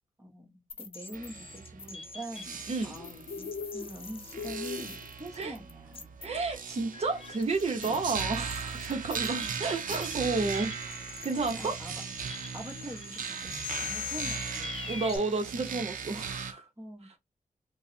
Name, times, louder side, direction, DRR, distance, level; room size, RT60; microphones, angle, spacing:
voice 1, 0.2-6.1 7.8-8.1 9.4-9.5 11.5-12.0 12.5-14.9 16.8-17.2, right 1 dB, 20° right, 1.1 m, -44 dB
sound 1, 0.7-15.2, left 5 dB, 40° left, 0.6 m, -43 dB
sound 2, 1.1-16.5, right 7 dB, 75° right, 0.5 m, -39 dB
Bird, 2.8-14.9, left 4 dB, 85° left, 0.5 m, -46 dB
voice 2, 6.2-11.0 11.2-11.8 14.9-16.7, right 3 dB, 50° right, 0.8 m, -31 dB
4.6 x 2.1 x 2.7 m
wide cardioid pair, 180°, 14 cm